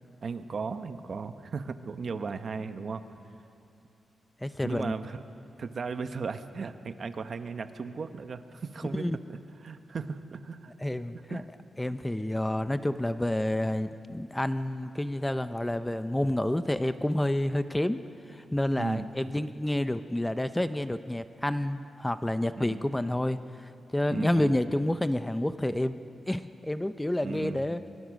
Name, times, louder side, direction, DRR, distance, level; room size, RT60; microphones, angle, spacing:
voice 1, 0.2-3.0 4.6-5.2 5.6-9.0 9.3-10.7 11.3-11.4 18.8-19.1 22.5-22.8 24.1-24.5 27.2-27.6, right 5 dB, 50° right, 9 dB, 1.0 m, -36 dB
voice 2, 4.4-4.9 8.9-9.2 10.8-11.4 11.8-18.0 18.3-26.0 26.3-27.8, left 1 dB, 10° left, 11 dB, 0.6 m, -29 dB
24.0 x 22.5 x 6.4 m, 2.7 s
cardioid pair, 105°, 0 cm